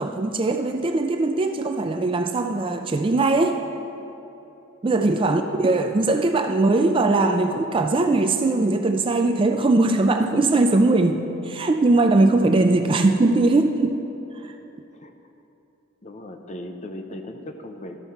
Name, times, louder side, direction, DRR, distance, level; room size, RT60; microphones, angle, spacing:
voice 1, 0.0-3.6 4.8-14.0 14.4-14.5, right 2 dB, 25° right, 6 dB, 0.3 m, -20 dB
voice 2, 16.0-18.0, left 1 dB, 35° left, 5 dB, 0.6 m, -38 dB
12.5 x 4.4 x 5.7 m, 2.9 s
head